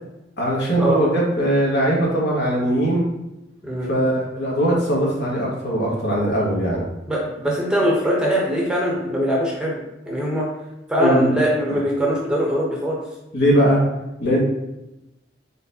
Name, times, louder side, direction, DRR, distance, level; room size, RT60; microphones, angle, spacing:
voice 1, 0.4-3.1 3.8-6.8 11.0-11.3 13.3-13.8 14.2-14.4, right 1 dB, 60° left, -4 dB, 1.6 m, -20 dB
voice 2, 7.1-10.5 10.9-13.0, equal, 5° right, -4 dB, 0.8 m, -22 dB
4.4 x 4.3 x 2.8 m, 0.94 s
head